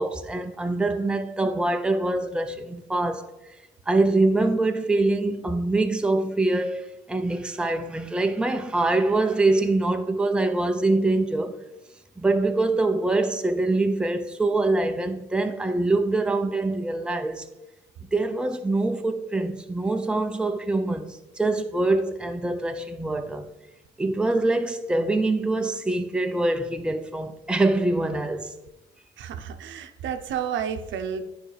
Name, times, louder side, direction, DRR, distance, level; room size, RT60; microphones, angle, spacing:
voice 1, 0.0-3.3 3.9-11.6 12.2-17.5 18.1-23.5 24.0-28.5, right 2 dB, 5° right, 0.6 m, -24 dB
voice 2, 29.2-31.2, right 8 dB, 70° right, 0.7 m, -31 dB
10.0 x 5.0 x 3.3 m
cardioid pair, 90°, 20 cm